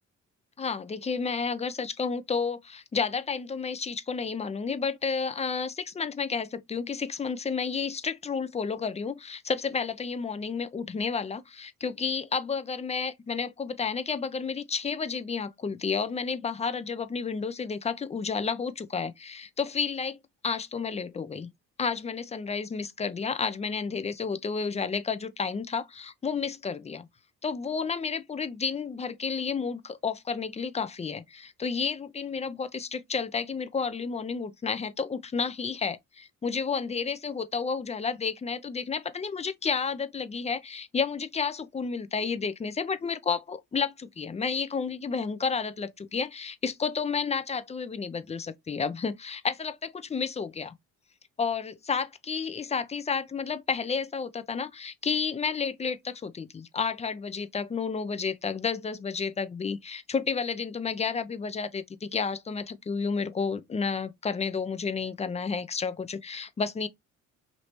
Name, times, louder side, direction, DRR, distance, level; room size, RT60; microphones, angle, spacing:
voice 1, 0.6-20.2 20.4-21.5 21.8-27.1 27.4-50.7 51.4-66.9, left 5 dB, 20° left, 0.4 m, -31 dB
3.1 x 2.7 x 3.0 m
cardioid pair, 90°, 30 cm